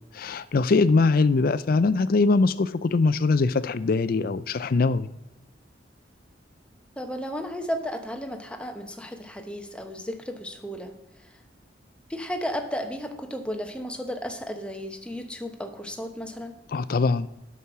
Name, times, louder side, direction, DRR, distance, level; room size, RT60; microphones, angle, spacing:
voice 1, 0.1-5.1 16.7-17.3, left 3 dB, 50° left, 15 dB, 0.4 m, -22 dB
voice 2, 7.0-10.9 11.2-11.4 12.1-16.5, equal, 5° left, 4 dB, 0.9 m, -34 dB
8.4 x 6.2 x 5.9 m, 0.94 s
head